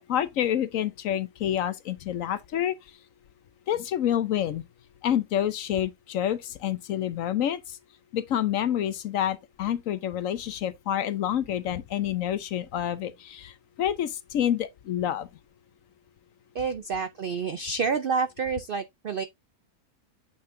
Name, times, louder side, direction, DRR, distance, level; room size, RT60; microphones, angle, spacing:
voice 1, 0.1-2.7 3.7-4.6 5.0-7.8 8.1-15.3, left 10 dB, 65° left, 1.0 m, -28 dB
voice 2, 16.5-19.2, right 5 dB, 75° right, 0.5 m, -28 dB
8.8 x 5.5 x 2.6 m
omnidirectional pair, 1.6 m